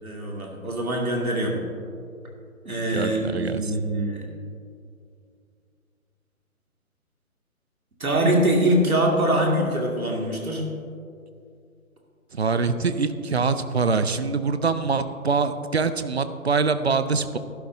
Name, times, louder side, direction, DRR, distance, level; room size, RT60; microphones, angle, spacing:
voice 1, 0.0-1.6 2.6-4.2 8.0-10.6, right 1 dB, 75° right, -1 dB, 2.4 m, -23 dB
voice 2, 2.9-3.7 12.3-17.4, right 4 dB, 50° right, 11 dB, 0.5 m, -24 dB
13.0 x 11.5 x 2.7 m, 2.4 s
figure-of-eight pair, 145°, 43 cm